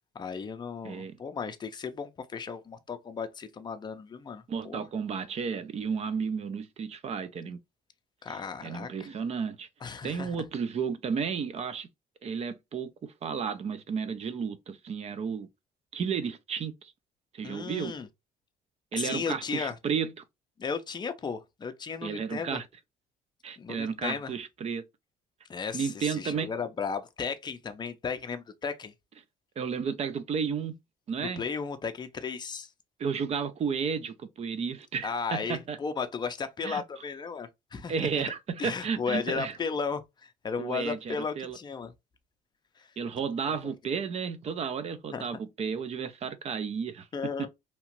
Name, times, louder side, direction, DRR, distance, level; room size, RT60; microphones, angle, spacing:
voice 1, 0.1-4.8 8.2-9.1 9.8-10.4 17.4-18.1 18.9-19.8 20.6-22.6 23.6-24.4 25.5-28.9 31.2-32.7 35.0-38.2 38.6-41.9 42.8-42.9 43.5-43.7 45.1-45.4 47.1-47.5, left 5 dB, 25° left, 0.5 m, -35 dB
voice 2, 0.8-1.2 4.5-7.6 8.3-9.7 10.0-11.9 12.2-15.5 15.9-16.9 17.3-18.0 18.9-20.1 22.0-22.7 23.4-24.8 25.7-26.5 29.6-30.8 31.1-31.4 33.0-35.8 36.6-36.8 37.9-39.6 40.6-41.6 43.0-47.1 47.4-47.5, right 6 dB, 40° right, 0.5 m, -32 dB
2.9 x 2.4 x 2.9 m
cardioid pair, 110°, 17 cm